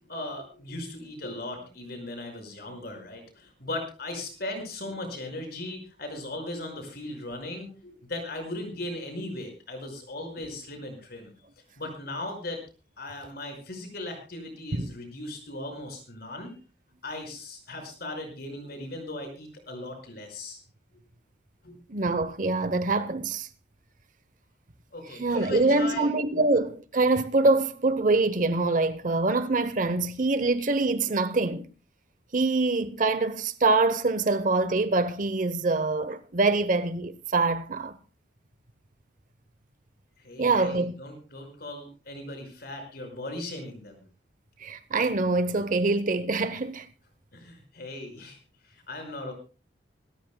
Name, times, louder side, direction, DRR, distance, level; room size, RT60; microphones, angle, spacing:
voice 1, 0.0-11.3 11.8-12.6 13.0-16.5 17.0-20.6 21.6-21.8 24.9-26.5 40.2-44.0 47.3-48.4 48.6-49.3, left 1 dB, 55° left, 5.4 m, -38 dB
voice 2, 21.9-23.5 25.2-31.7 32.3-38.0 40.4-41.0 44.6-46.9, right 3 dB, 45° right, 0.8 m, -25 dB
26.5 x 13.0 x 2.2 m
head